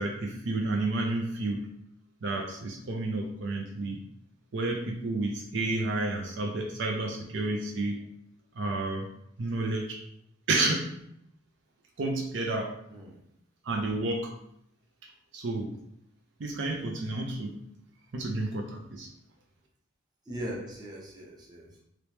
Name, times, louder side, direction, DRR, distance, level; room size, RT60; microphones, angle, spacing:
voice 1, 0.0-1.7 2.2-4.0 4.5-8.0 8.6-9.1 9.4-10.0 10.5-10.9 12.0-12.7 13.6-14.3 15.3-15.8 16.4-17.6 18.1-19.1, right 2 dB, 65° right, 1 dB, 0.5 m, -30 dB
voice 2, 20.3-21.8, equal, 20° right, -3 dB, 0.8 m, -39 dB
3.0 x 3.0 x 3.2 m, 0.74 s
head